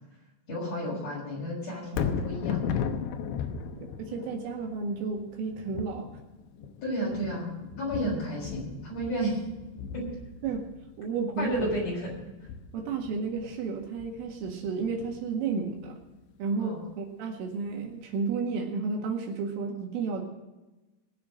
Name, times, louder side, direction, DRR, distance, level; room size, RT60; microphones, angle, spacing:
voice 1, 0.5-2.6 6.8-7.5 7.8-9.4 9.9-10.0 11.4-12.1 16.6-16.8, equal, 30° left, -4 dB, 7.1 m, -32 dB
Thunder, 1.8-16.1 16.5-16.6, left 7 dB, 75° left, 2.8 m, -37 dB
voice 2, 3.8-6.1 10.4-10.7 11.0-11.7 12.7-16.0 16.4-20.2, right 4 dB, 75° right, 1 dB, 4.2 m, -32 dB
20.5 x 7.2 x 6.3 m, 1.1 s
omnidirectional pair, 6.0 m